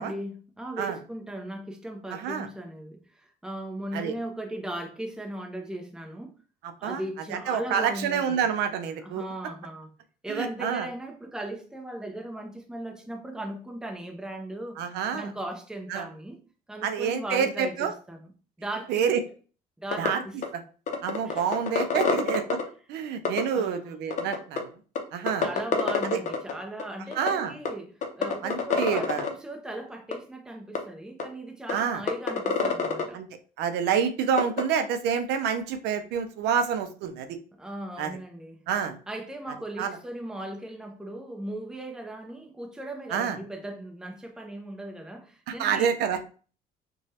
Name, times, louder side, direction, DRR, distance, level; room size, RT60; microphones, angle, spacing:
voice 1, 0.0-6.3 6.8-8.5 9.0-9.9 10.2-14.8 15.1-16.4 16.7-18.3 18.6-19.1 19.8-20.4 21.2-21.5 22.0-22.3 23.5-24.0 25.4-33.2 37.6-38.6 39.1-45.9, right 1 dB, 5° right, 0.6 m, -38 dB
voice 2, 2.1-2.5 3.9-4.1 6.8-7.0 7.3-9.2 10.3-10.9 14.8-15.3 15.9-16.1 16.8-17.9 18.9-19.2 20.0-20.2 21.0-22.6 22.9-24.6 25.1-25.5 26.0-26.2 27.2-27.5 28.4-29.2 31.7-32.0 33.1-33.3 33.6-37.3 38.0-38.2 38.7-38.9 39.8-39.9 43.1-43.4 45.5-46.2, right 7 dB, 80° right, 0.5 m, -27 dB
sound 1, 19.9-20.1 20.4-20.5 20.9-22.6 23.3-23.4 24.1-24.6 25.0-25.1 25.3-26.5 26.8-26.9 27.1-27.3 27.7-27.8 28.0-29.3 30.1-30.2 30.8-30.9 31.2-31.3 31.7-31.8 32.1-33.0 34.4-34.6, left 6 dB, 45° left, 0.6 m, -25 dB
3.0 x 2.2 x 2.7 m
cardioid pair, 110°, 17 cm